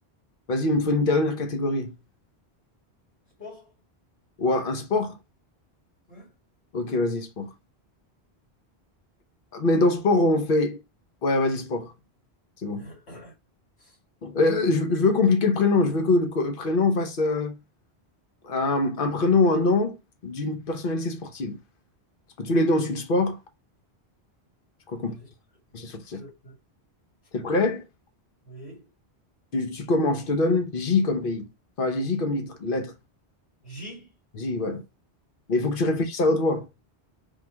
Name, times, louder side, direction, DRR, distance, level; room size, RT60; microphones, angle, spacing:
voice 1, 0.5-1.9 4.4-5.2 6.7-7.5 9.5-10.8 11.2-11.9 12.6-12.9 14.2-17.5 18.4-20.0 20.2-21.6 22.4-23.4 24.9-25.1 25.7-26.2 27.3-27.8 29.5-31.5 31.8-32.9 34.4-34.8 35.5-36.6, left 2 dB, 55° left, 1.0 m, -24 dB
voice 2, 3.4-3.8 6.1-6.3 12.7-13.3 13.8-14.0 25.0-25.3 26.1-26.5 28.4-28.9 33.6-34.1 35.9-36.0, equal, 80° left, 2.4 m, -44 dB
3.7 x 2.4 x 4.4 m
omnidirectional pair, 1.1 m